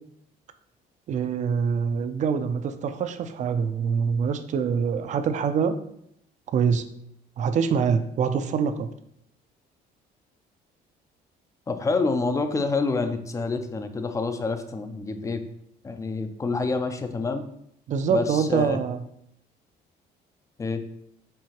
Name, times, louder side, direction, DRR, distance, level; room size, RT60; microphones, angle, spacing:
voice 1, 1.1-5.8 6.5-6.9 7.4-8.9 17.9-19.0, right 6 dB, 45° right, 9 dB, 0.4 m, -25 dB
voice 2, 11.7-15.4 15.8-17.4 18.1-18.8 20.6-20.8, left 3 dB, 20° left, 8 dB, 0.4 m, -27 dB
4.5 x 2.7 x 2.9 m, 0.72 s
cardioid pair, 110°, 17 cm